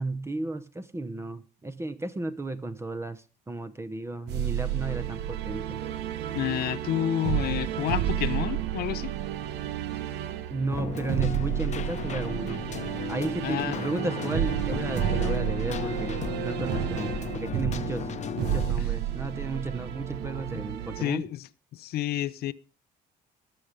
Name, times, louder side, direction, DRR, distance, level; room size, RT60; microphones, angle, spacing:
voice 1, 0.0-5.8 10.5-12.6 13.1-18.1 18.4-21.2, right 2 dB, 15° right, 0.9 m, -34 dB
sound 1, 4.3-21.0, right 11 dB, 80° right, 1.1 m, -31 dB
voice 2, 6.3-9.1 13.4-13.8 18.8-18.9 21.0-22.5, left 13 dB, 70° left, 0.7 m, -30 dB
Keyboard (musical), 10.7-18.7, left 8 dB, 45° left, 0.9 m, -35 dB
19.5 x 6.8 x 5.2 m
cardioid pair, 110°, 17 cm